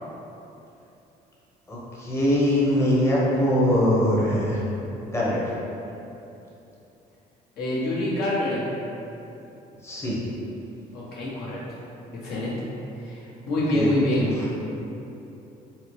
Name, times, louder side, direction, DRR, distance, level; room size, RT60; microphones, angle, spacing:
voice 1, 1.7-4.6 5.1-5.5 9.8-10.2 13.7-13.9 14.2-14.3, equal, 15° left, -7 dB, 0.9 m, -22 dB
voice 2, 7.6-8.6 10.9-11.6 12.2-12.7 13.0-14.3, left 1 dB, 65° left, -8 dB, 1.1 m, -26 dB
4.2 x 2.1 x 3.1 m, 2.9 s
cardioid pair, 110°, 17 cm